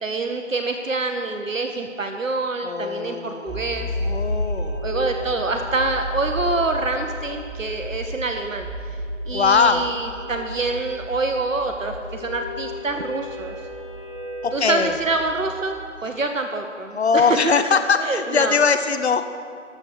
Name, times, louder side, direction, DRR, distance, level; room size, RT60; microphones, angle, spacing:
voice 1, 0.0-3.9 4.8-8.7 9.3-13.5 14.5-17.5 18.0-18.6, right 3 dB, 75° right, 5 dB, 0.9 m, -26 dB
voice 2, 2.6-4.9 9.3-9.9 14.4-15.0 16.9-19.3, left 5 dB, 55° left, 9 dB, 0.7 m, -21 dB
sound 1, 3.5-15.7, equal, 25° right, 2.2 m, -32 dB
13.5 x 5.3 x 6.0 m, 2.3 s
figure-of-eight pair, 155°, 39 cm